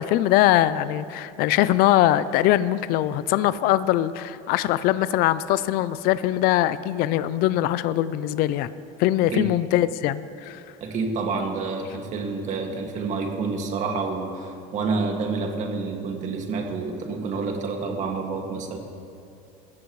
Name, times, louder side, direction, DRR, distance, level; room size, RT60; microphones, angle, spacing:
voice 1, 0.0-8.7 9.0-10.6, left 13 dB, 55° left, 15 dB, 0.5 m, -22 dB
voice 2, 10.8-18.8, right 4 dB, 40° right, 2 dB, 2.1 m, -28 dB
27.5 x 14.5 x 3.2 m, 2.6 s
cardioid pair, 145°, 18 cm